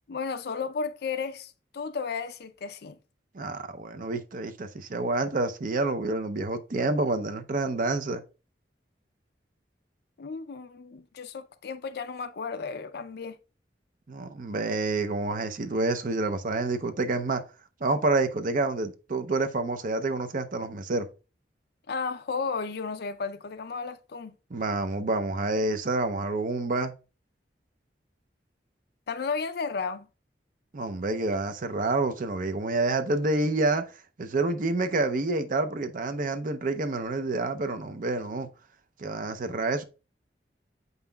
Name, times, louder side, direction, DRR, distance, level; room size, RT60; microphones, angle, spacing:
voice 1, 0.1-3.0 10.2-13.4 21.9-24.3 29.1-30.1, left 5 dB, 60° left, 0.5 m, -33 dB
voice 2, 3.3-8.2 14.1-17.4 17.8-21.1 24.5-26.9 30.7-33.8 34.2-38.5 39.0-39.8, right 2 dB, 50° right, 0.6 m, -28 dB
7.8 x 5.5 x 2.3 m
head